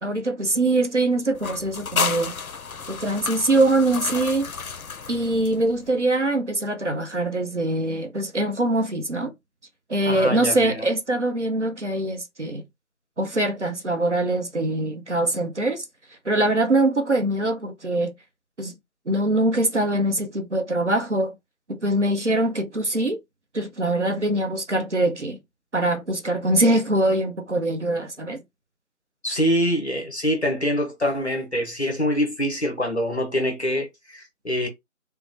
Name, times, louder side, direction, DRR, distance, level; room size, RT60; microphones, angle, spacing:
voice 1, 0.0-2.3 2.9-4.5 5.1-9.3 9.9-12.6 13.2-15.8 16.3-18.1 18.6-18.7 19.1-21.3 21.7-23.2 23.5-25.4 25.7-28.4, right 1 dB, 55° right, 0.6 m, -23 dB
sound 1, 1.4-5.9, left 5 dB, 70° left, 0.6 m, -31 dB
voice 2, 10.0-10.9 29.2-34.7, equal, 50° left, 0.8 m, -25 dB
3.3 x 2.0 x 2.5 m
figure-of-eight pair, 170°, 44 cm